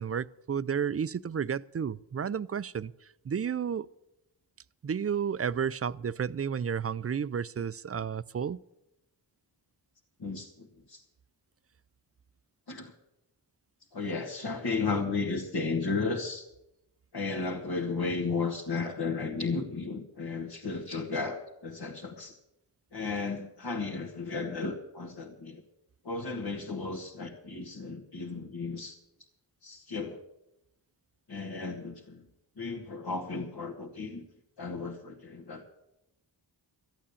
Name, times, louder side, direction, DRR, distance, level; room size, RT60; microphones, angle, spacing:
voice 1, 0.0-2.9 3.2-3.9 4.8-8.6, right 7 dB, 35° right, 0.4 m, -32 dB
voice 2, 10.2-11.0 12.7-12.9 13.9-16.5 17.1-22.4 22.9-25.6 26.0-29.0 29.6-30.2 31.3-32.2 32.6-34.2 34.6-35.7, left 4 dB, 60° left, 1.7 m, -34 dB
14.0 x 8.9 x 8.5 m
cardioid pair, 45°, 44 cm